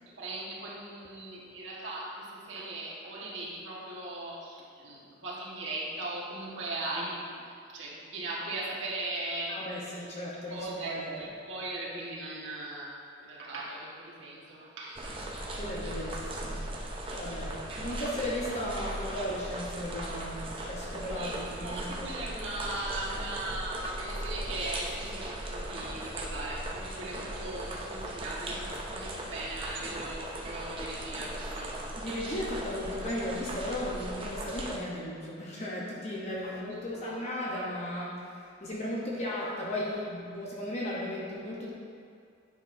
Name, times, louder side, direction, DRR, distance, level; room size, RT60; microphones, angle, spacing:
voice 1, 0.1-9.6 10.5-15.2 21.1-31.8 36.4-37.2, right 2 dB, 70° right, -6 dB, 1.5 m, -39 dB
voice 2, 9.5-11.2 15.3-16.6 17.1-22.1 32.0-41.7, left 1 dB, 35° left, -5 dB, 0.9 m, -36 dB
sound 1, 15.0-34.8, right 1 dB, 25° right, 0.6 m, -38 dB
9.3 x 6.0 x 2.7 m, 2.3 s
head